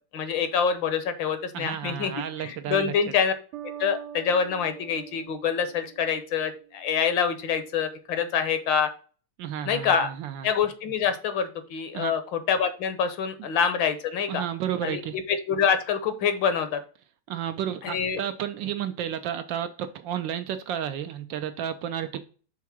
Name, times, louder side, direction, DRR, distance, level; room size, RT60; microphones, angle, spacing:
voice 1, 0.1-2.1 2.4-3.3 3.8-8.9 9.6-10.1 10.4-14.4 14.8-15.0 15.3-16.8 17.8-18.2, left 7 dB, 70° left, 1.4 m, -26 dB
voice 2, 1.5-3.1 9.4-10.5 11.9-12.1 14.3-15.2 17.3-22.2, right 9 dB, 75° right, 1.2 m, -32 dB
Bass guitar, 3.5-7.1, right 10 dB, 90° right, 1.6 m, -44 dB
5.9 x 3.6 x 5.9 m
omnidirectional pair, 2.3 m